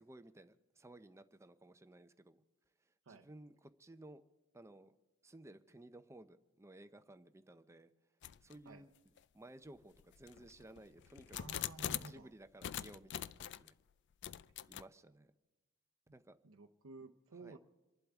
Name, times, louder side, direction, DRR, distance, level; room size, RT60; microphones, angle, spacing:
voice 1, 0.0-2.4 3.1-4.2 4.5-4.9 5.2-7.9 8.4-8.9 9.3-11.5 12.0-13.8 14.7-15.3 16.1-16.4 17.4-17.6, right 1 dB, 15° right, 10 dB, 0.6 m, -57 dB
sound 1, 8.2-8.6 9.2-9.3 10.0-12.2 12.6-13.7 14.2-14.8, left 11 dB, 55° left, 0.4 m, -43 dB
voice 2, 11.3-12.3 16.4-17.6, right 3 dB, 70° right, 2 dB, 0.7 m, -53 dB
28.0 x 11.5 x 3.5 m, 1.1 s
head